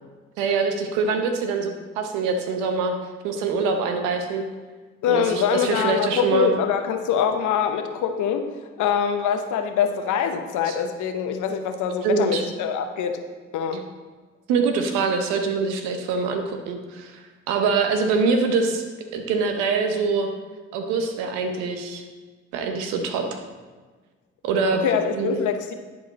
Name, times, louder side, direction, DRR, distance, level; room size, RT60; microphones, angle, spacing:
voice 1, 0.4-3.0 3.2-4.5 5.1-6.5 10.7-10.8 12.0-12.4 14.5-18.8 19.1-20.3 20.7-22.0 22.5-23.4 24.4-24.8 25.1-25.4, right 4 dB, 90° right, 5 dB, 0.8 m, -24 dB
voice 2, 5.0-8.5 8.8-13.2 13.5-13.8 24.8-25.7, left 7 dB, 80° left, 7 dB, 0.8 m, -24 dB
10.5 x 4.8 x 4.0 m, 1.4 s
hypercardioid pair, 45°, 30 cm